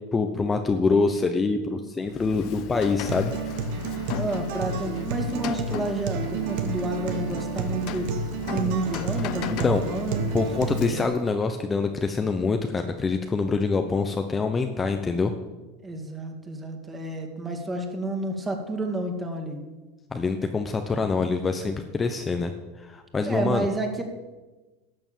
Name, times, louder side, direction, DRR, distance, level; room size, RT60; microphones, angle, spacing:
voice 1, 0.1-3.3 9.5-9.8 10.3-15.3 20.1-22.5 22.8-23.7, left 4 dB, 20° left, 6 dB, 0.9 m, -25 dB
Rain, 2.0-11.3, left 16 dB, 55° left, 0.5 m, -37 dB
Acoustic guitar, 3.1-11.1, right 4 dB, 65° right, 1.3 m, -30 dB
voice 2, 4.1-8.1 8.5-10.3 15.8-19.6 23.2-24.0, right 2 dB, 15° right, 4 dB, 2.3 m, -30 dB
12.5 x 6.9 x 7.3 m, 1.2 s
hypercardioid pair, 105°, 0 cm